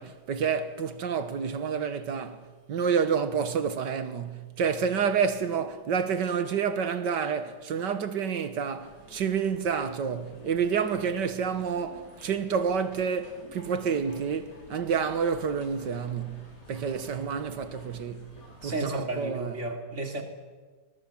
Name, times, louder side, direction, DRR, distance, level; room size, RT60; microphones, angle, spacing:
voice 1, 0.0-18.3 18.6-19.6, right 6 dB, 80° right, 2.0 m, -29 dB
sound 1, 8.8-19.0, left 1 dB, 70° left, 5.1 m, -50 dB
voice 2, 18.6-20.2, right 2 dB, 40° right, 3.2 m, -33 dB
24.5 x 21.0 x 7.3 m
omnidirectional pair, 1.9 m